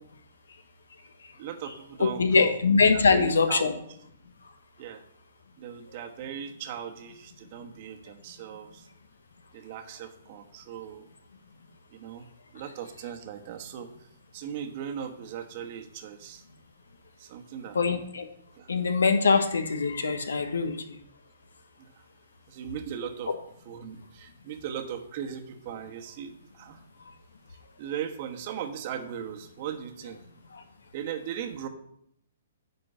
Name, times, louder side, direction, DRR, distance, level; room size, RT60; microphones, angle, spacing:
voice 1, 1.4-2.5 3.1-3.7 4.8-5.0 5.6-8.9 9.5-11.1 11.9-12.3 12.5-13.9 14.3-16.4 17.2-17.8 18.5-18.7 21.8-21.9 22.5-23.3 23.6-26.8 27.8-30.2 30.9-31.7, right 9 dB, 40° right, 5 dB, 1.3 m, -38 dB
voice 2, 2.0-3.7 17.7-18.2 18.7-20.7 23.3-23.4, left 4 dB, 75° left, 8 dB, 1.2 m, -23 dB
10.0 x 4.4 x 7.0 m, 0.71 s
figure-of-eight pair, 120°, 0 cm